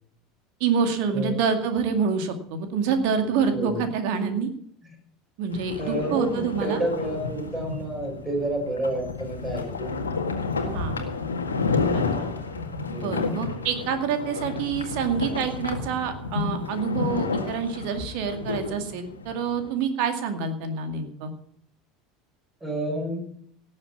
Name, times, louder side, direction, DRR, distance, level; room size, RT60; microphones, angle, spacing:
voice 1, 0.6-4.5 5.4-6.8 10.7-11.0 11.9-12.3 12.9-21.3, right 6 dB, 55° right, 7 dB, 2.2 m, -27 dB
sound 1, 5.5-19.7, left 4 dB, 80° left, 1.8 m, -30 dB
voice 2, 5.8-10.0 12.9-13.2 22.6-23.2, right 1 dB, 15° right, 1 dB, 6.5 m, -29 dB
17.5 x 7.7 x 7.2 m, 0.65 s
figure-of-eight pair, 75°, 0 cm